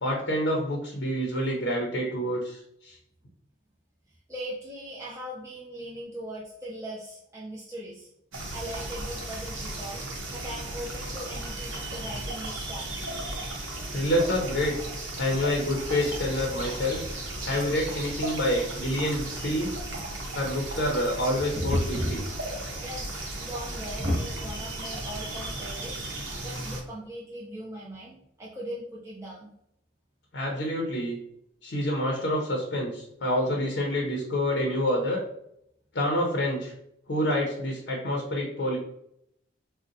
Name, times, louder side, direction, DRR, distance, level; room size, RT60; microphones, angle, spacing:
voice 1, 0.0-3.0 13.9-14.7 15.2-17.0 17.4-19.7 20.3-22.2 30.3-31.2 31.6-35.2 35.9-36.7 37.1-38.8, left 1 dB, 60° left, 0 dB, 0.6 m, -27 dB
voice 2, 4.1-8.1 8.5-10.0 10.3-13.0 22.8-29.5, right 1 dB, 15° right, -6 dB, 0.4 m, -40 dB
sound 1, 8.3-26.8, right 1 dB, 85° right, 0.7 m, -35 dB
sound 2, 21.4-22.7 23.1-23.2 23.5-23.6 24.0-24.7 25.4-25.5, equal, 40° right, 0.8 m, -29 dB
3.8 x 2.1 x 2.5 m, 0.75 s
head